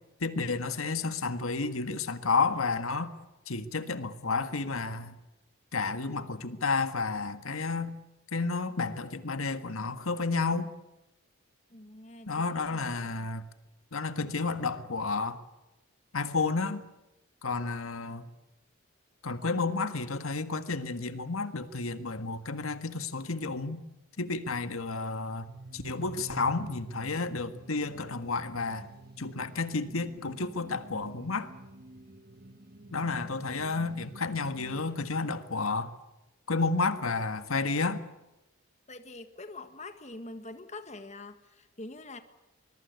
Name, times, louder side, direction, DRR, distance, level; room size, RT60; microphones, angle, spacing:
voice 1, 0.2-3.1 3.5-5.1 5.7-7.9 8.3-10.7 12.3-13.4 13.9-15.4 16.1-16.8 17.4-18.3 19.2-23.8 24.2-25.4 25.7-28.9 29.2-31.5 32.9-35.9 36.5-38.0, left 4 dB, 85° left, 1.7 m, -31 dB
voice 2, 11.7-13.3 38.9-42.2, left 2 dB, 35° left, 1.6 m, -45 dB
sound 1, 25.0-34.9, right 2 dB, 45° right, 1.5 m, -48 dB
25.0 x 21.5 x 8.2 m
head